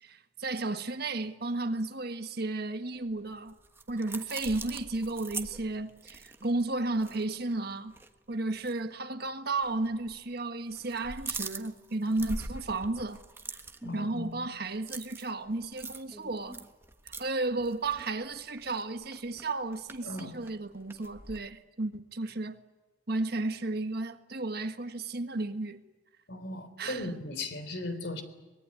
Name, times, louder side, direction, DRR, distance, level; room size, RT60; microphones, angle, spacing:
voice 1, 0.0-3.6 3.9-7.9 8.3-13.2 13.9-16.6 17.0-22.6 23.1-25.8 26.8-27.1, right 2 dB, 60° right, 1.5 m, -33 dB
sound 1, 3.1-7.6 7.9-8.1 8.6-8.8 9.6-10.2 10.5-21.4, right 3 dB, 15° right, 1.3 m, -43 dB
voice 2, 13.8-14.5 20.0-20.4 26.3-28.2, left 2 dB, 70° left, 3.6 m, -37 dB
23.5 x 20.5 x 9.7 m
head